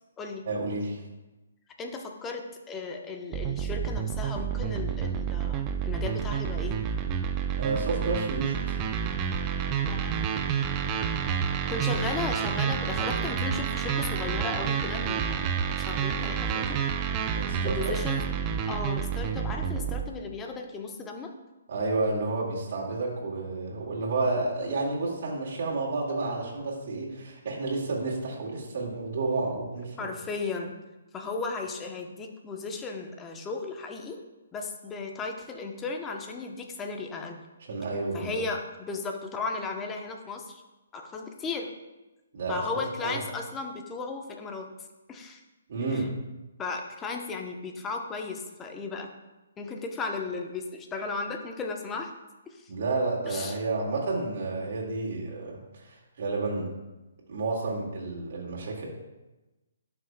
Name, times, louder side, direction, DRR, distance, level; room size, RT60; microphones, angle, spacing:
voice 1, 0.5-1.0 7.6-8.8 17.3-17.8 21.7-30.0 37.7-38.3 42.3-42.6 43.0-43.2 45.7-46.1 52.7-56.7 57.3-58.8, right 3 dB, 55° right, -4 dB, 2.1 m, -30 dB
voice 2, 1.8-6.8 9.9-10.1 11.7-15.4 15.7-16.8 17.6-18.3 18.6-21.3 30.0-30.7 31.1-34.2 34.5-37.4 38.1-40.6 40.9-41.7 42.5-44.7 45.1-45.4 45.9-46.1 46.6-49.1 49.6-52.1 52.5-52.7 53.3-53.6, left 4 dB, 15° left, 3 dB, 0.9 m, -35 dB
sound 1, 3.3-20.1, right 7 dB, 25° right, 0.5 m, -29 dB
12.0 x 5.8 x 2.3 m, 1.1 s
hypercardioid pair, 140°, 0 cm